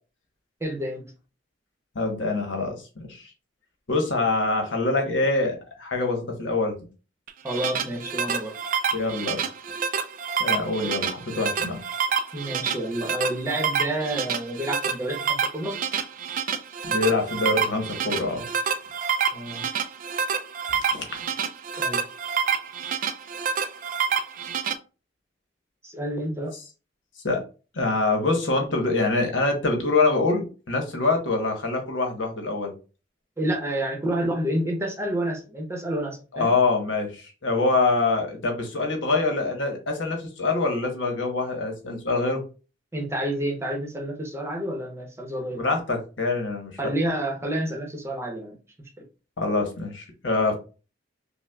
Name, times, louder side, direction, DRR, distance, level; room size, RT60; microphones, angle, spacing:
voice 1, 0.6-1.1 7.4-8.5 10.8-10.9 12.3-15.8 19.3-19.7 21.8-22.0 25.8-26.5 33.4-36.5 42.9-45.6 46.8-48.6 49.0-49.1, right 1 dB, 15° right, 1 dB, 0.8 m, -29 dB
voice 2, 1.9-3.3 3.9-6.8 8.9-9.4 10.4-11.8 16.8-18.5 20.9-21.0 27.2-27.4 27.7-32.7 36.3-42.4 45.5-46.7 49.4-50.5, left 3 dB, 90° left, 3 dB, 1.0 m, -25 dB
sound 1, 7.3-24.7, right 7 dB, 45° right, 0.4 m, -28 dB
5.5 x 2.1 x 2.3 m, 0.34 s
head